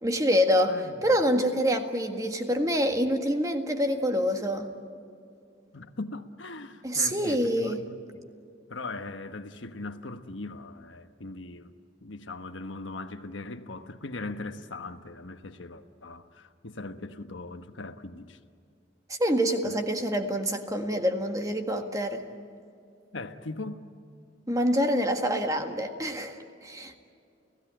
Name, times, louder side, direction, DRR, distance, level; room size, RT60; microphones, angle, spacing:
voice 1, 0.0-4.7 6.8-7.8 19.1-22.2 24.5-27.0, equal, 20° right, 1.7 m, -26 dB
voice 2, 0.7-1.2 5.7-7.8 8.7-11.7 12.0-18.4 19.6-19.8 23.1-23.8, left 2 dB, 80° left, 1.2 m, -40 dB
30.0 x 16.5 x 9.0 m
head